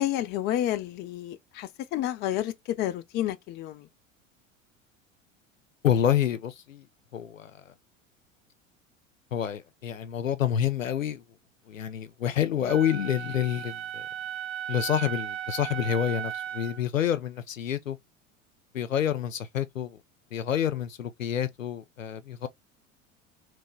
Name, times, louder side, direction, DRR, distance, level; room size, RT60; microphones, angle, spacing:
voice 1, 0.0-3.9, left 12 dB, 30° left, 0.4 m, -30 dB
voice 2, 5.8-6.8 7.1-7.5 9.3-11.2 11.7-14.0 14.7-18.0 18.7-20.0 20.3-22.5, left 10 dB, 80° left, 0.5 m, -28 dB
Wind instrument woodwind instrument, 12.7-16.8, right 10 dB, 20° right, 0.5 m, -36 dB
3.2 x 2.1 x 3.0 m
figure-of-eight pair, 75°, 39 cm